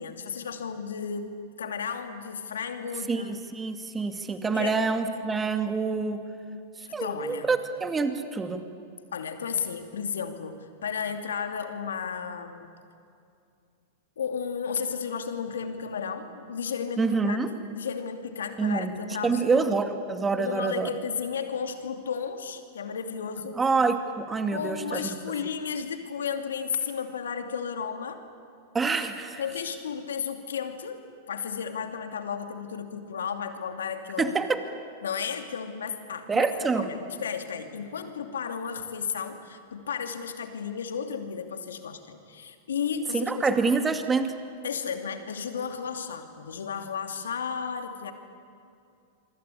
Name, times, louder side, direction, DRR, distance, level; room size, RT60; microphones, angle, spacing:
voice 1, 0.0-3.4 4.5-4.8 6.9-7.5 9.1-12.7 14.2-19.7 20.4-23.6 24.5-28.2 29.4-31.0 31.3-34.3 35.0-43.6 44.6-48.1, left 6 dB, 80° left, 6 dB, 2.6 m, -33 dB
voice 2, 3.1-6.2 6.8-8.6 17.0-17.5 18.6-18.9 19.2-20.9 23.6-25.1 28.7-29.4 34.2-34.6 36.3-36.9 43.1-44.4, right 4 dB, 15° right, 6 dB, 2.4 m, -26 dB
27.0 x 24.0 x 8.5 m, 2.5 s
hypercardioid pair, 105°, 0 cm